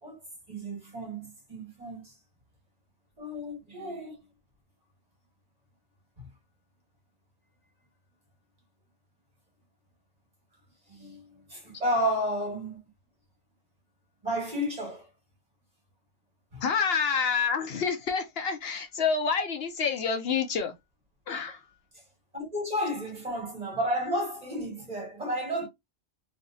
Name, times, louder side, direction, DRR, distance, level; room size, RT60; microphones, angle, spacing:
voice 1, 0.5-2.1 3.2-4.2 6.2-6.3 10.9-12.8 14.2-15.1 16.5-16.6 21.9-22.0 22.3-25.7, equal, 35° right, 1.9 m, -32 dB
voice 2, 16.6-20.7 21.3-21.6, left 6 dB, 65° left, 0.8 m, -28 dB
3.3 x 2.8 x 2.6 m
omnidirectional pair, 1.2 m